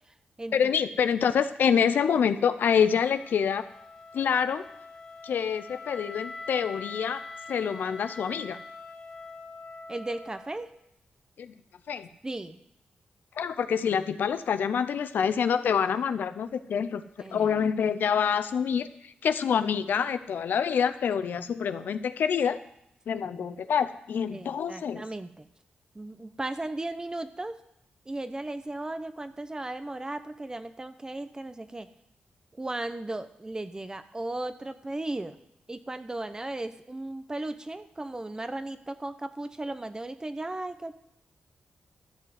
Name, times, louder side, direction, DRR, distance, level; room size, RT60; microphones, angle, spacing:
voice 1, 0.5-3.6 4.1-4.6 5.2-7.2 7.5-8.6 11.4-11.5 11.9-12.1 13.4-17.0 17.3-22.6 23.1-25.0, left 7 dB, 80° left, 12 dB, 0.6 m, -26 dB
Wind instrument woodwind instrument, 2.7-10.8, left 3 dB, 25° left, 2.5 m, -44 dB
voice 2, 9.9-10.7 12.2-12.6 17.2-17.6 24.3-25.5 25.9-27.6 28.1-31.9 32.5-35.4 35.7-40.9, right 2 dB, 20° right, 11 dB, 0.8 m, -36 dB
13.0 x 5.6 x 7.9 m, 0.76 s
cardioid pair, 75°, 3 cm